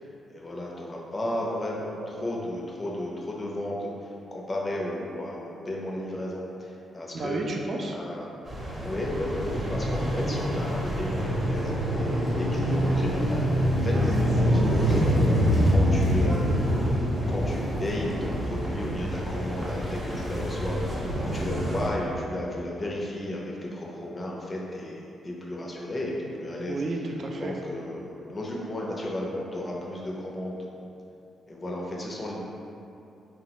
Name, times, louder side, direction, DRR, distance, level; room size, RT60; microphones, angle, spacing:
voice 1, 0.0-7.4 7.9-8.3 8.8-16.5 17.3-26.8 27.4-30.7 31.5-32.4, left 1 dB, 25° left, -3 dB, 0.5 m, -34 dB
voice 2, 7.1-8.0 26.7-27.5, right 2 dB, 50° right, 1 dB, 0.3 m, -31 dB
sound 1, 8.5-21.9, equal, 20° right, 0.7 m, -26 dB
3.1 x 2.0 x 2.8 m, 2.7 s
cardioid pair, 85°, 0 cm